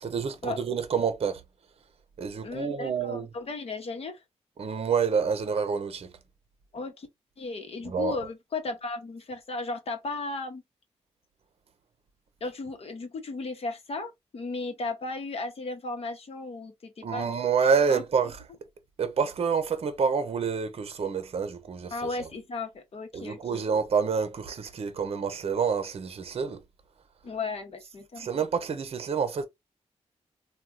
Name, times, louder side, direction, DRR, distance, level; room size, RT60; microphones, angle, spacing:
voice 1, 0.0-1.4 2.2-3.3 4.6-6.1 7.9-8.2 17.0-18.4 19.0-21.9 23.1-26.6 28.2-29.5, right 6 dB, 55° right, 0.6 m, -28 dB
voice 2, 2.4-4.2 6.7-7.1 7.4-10.6 12.4-17.3 17.6-18.0 21.9-23.6 27.2-28.3, left 3 dB, 55° left, 0.9 m, -35 dB
3.4 x 2.3 x 2.5 m
cardioid pair, 70°, 12 cm